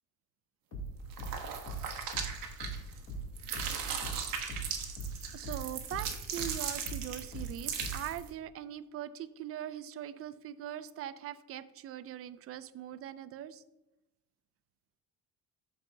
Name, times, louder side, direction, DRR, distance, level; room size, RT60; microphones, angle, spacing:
sound 1, 0.7-5.7 5.9-8.2, right 2 dB, 50° left, 2.8 m, -40 dB
sound 2, 1.1-3.1 3.4-8.3, right 7 dB, 65° right, 1.2 m, -38 dB
voice 1, 5.3-13.6, right 11 dB, 40° right, 14 dB, 0.4 m, -41 dB
13.0 x 4.7 x 2.7 m, 0.97 s
cardioid pair, 145°, 37 cm